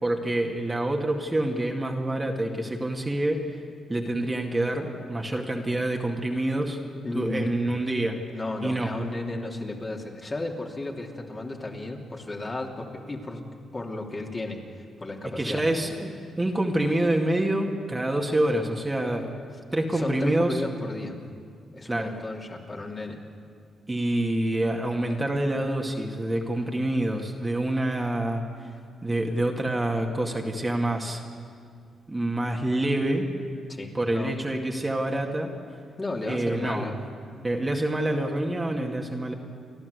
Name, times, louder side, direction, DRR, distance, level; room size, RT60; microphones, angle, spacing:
voice 1, 0.0-3.4 3.9-6.8 7.1-8.2 8.6-8.9 15.4-16.1 16.4-20.6 21.9-22.1 23.9-28.7 29.0-31.2 32.1-33.2 33.9-35.5 36.3-36.9 37.4-39.3, right 1 dB, 20° right, 1 dB, 2.2 m, -27 dB
voice 2, 7.0-7.8 8.3-13.4 13.7-15.6 19.9-21.2 21.7-23.2 33.7-34.3 36.0-37.0, left 2 dB, 30° left, 0 dB, 2.9 m, -34 dB
30.0 x 12.0 x 8.2 m, 2.2 s
cardioid pair, 75°, 0 cm